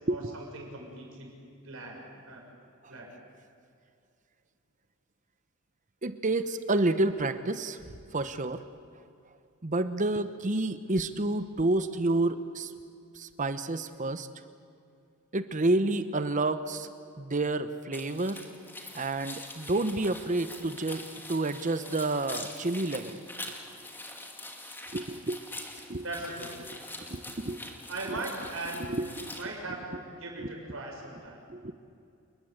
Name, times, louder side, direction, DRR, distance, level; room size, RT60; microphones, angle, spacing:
voice 1, 0.1-1.3 1.6-2.4 2.9-3.1 26.0-26.7 27.9-28.8 29.3-31.4, right 2 dB, 65° right, 0 dB, 6.5 m, -39 dB
voice 2, 6.0-7.8 8.1-8.6 9.6-12.7 13.1-14.3 15.3-16.9 17.2-18.5 18.9-23.2 24.9-25.4 25.9-26.0 27.1-27.7 28.1-28.2 28.8-29.3 30.4-30.5 31.5-31.7, right 2 dB, 35° right, 11 dB, 0.9 m, -29 dB
sound 1, 17.9-29.4, left 2 dB, 10° left, 2.4 m, -44 dB
29.0 x 21.0 x 8.1 m, 2.4 s
head